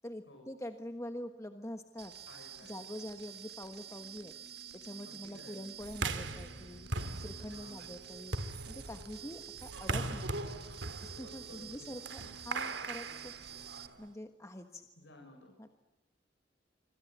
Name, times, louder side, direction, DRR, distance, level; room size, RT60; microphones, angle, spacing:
voice 1, 0.0-2.1 2.6-4.3 4.7-6.9 7.2-8.4 8.6-10.3 11.0-13.3 14.0-14.8 15.6-15.7, left 1 dB, 15° left, 6 dB, 1.3 m, -45 dB
sound 1, 2.0-13.9, right 9 dB, 60° right, 1.8 m, -49 dB
sound 2, 2.2-13.9, right 2 dB, 30° left, 4.7 m, -59 dB
voice 2, 2.3-2.8 5.0-5.6 7.5-7.8 11.5-11.8 15.0-15.5, left 1 dB, 80° left, 2 dB, 7.1 m, -55 dB
sound 3, 5.9-14.0, right 3 dB, 90° right, 2.5 m, -40 dB
27.0 x 25.5 x 8.1 m, 1.0 s
head